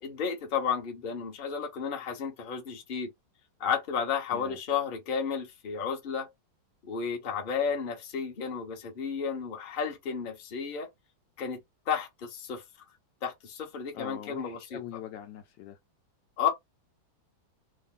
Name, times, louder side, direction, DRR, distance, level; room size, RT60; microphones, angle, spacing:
voice 1, 0.0-3.1 3.6-6.3 6.8-10.9 11.4-11.6 11.9-12.6 13.2-15.0 16.4-16.5, left 6 dB, 40° left, 0.8 m, -32 dB
voice 2, 13.9-15.8, left 10 dB, 75° left, 1.1 m, -42 dB
3.2 x 2.4 x 3.6 m
omnidirectional pair, 2.2 m